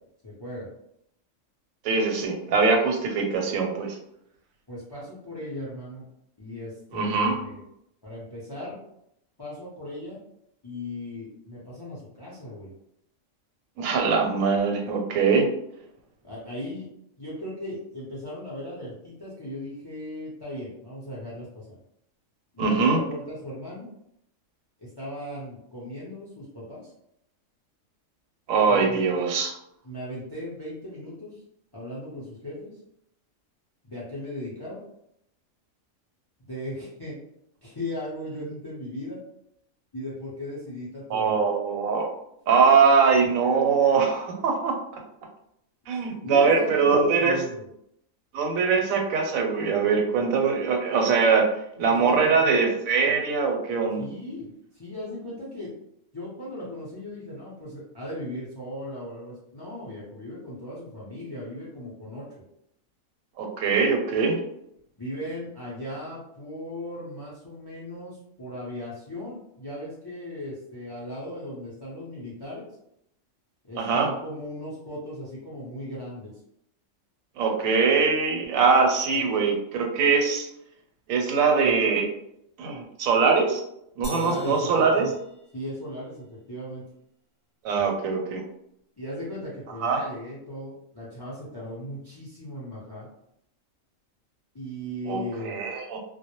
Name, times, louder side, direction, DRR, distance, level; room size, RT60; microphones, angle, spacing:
voice 1, 0.2-0.7 4.7-6.0 6.4-7.6 8.0-8.8 9.4-10.2 10.6-12.7 16.2-16.9 17.2-21.7 22.5-23.9 24.8-26.9 28.7-29.1 29.8-31.4 31.7-32.7 33.8-34.8 36.5-37.2 37.6-39.2 39.9-41.4 45.9-46.0 46.3-47.6 51.9-52.6 54.0-55.7 56.1-62.3 65.0-72.7 73.7-76.3 84.1-85.1 85.5-86.8 89.0-93.1 94.5-95.6, left 1 dB, 40° left, -6 dB, 0.3 m, -37 dB
voice 2, 1.8-3.9 6.9-7.4 13.8-15.5 22.6-23.0 28.5-29.5 41.1-42.1 42.5-44.8 45.9-47.4 48.3-51.5 51.8-54.1 63.4-64.4 73.8-74.1 77.4-80.5 81.1-82.1 82.6-83.6 84.0-85.1 87.6-88.4 89.8-90.0 95.1-96.0, right 5 dB, 90° right, 2 dB, 1.0 m, -22 dB
sound 1, 84.0-86.0, left 1 dB, 25° left, 0.8 m, -43 dB
2.2 x 2.0 x 2.9 m, 0.76 s
omnidirectional pair, 1.4 m